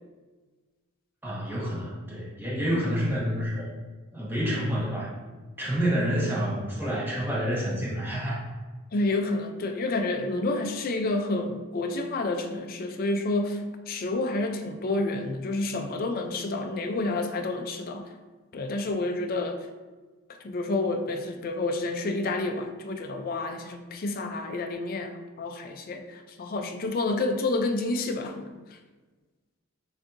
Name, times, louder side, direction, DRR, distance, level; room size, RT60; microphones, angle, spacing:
voice 1, 1.2-3.7 4.1-5.1 5.6-8.4, equal, 10° right, -7 dB, 1.0 m, -28 dB
voice 2, 8.9-18.1 18.5-19.6 20.4-25.1 25.4-28.5, left 2 dB, 40° left, 5 dB, 0.4 m, -29 dB
6.3 x 2.7 x 2.6 m, 1.3 s
head